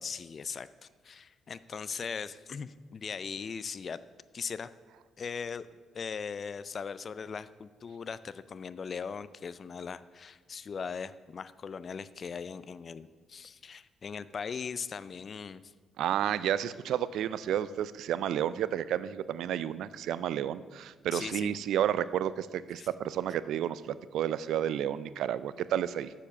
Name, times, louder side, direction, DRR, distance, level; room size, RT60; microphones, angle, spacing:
voice 1, 0.0-4.0 4.3-4.7 5.2-5.7 5.9-15.7 21.1-21.5 22.8-22.9, left 6 dB, 45° left, 16 dB, 0.4 m, -39 dB
voice 2, 16.0-26.1, right 10 dB, 80° right, 16 dB, 0.3 m, -31 dB
7.2 x 7.1 x 6.6 m, 1.4 s
cardioid pair, 90°, 0 cm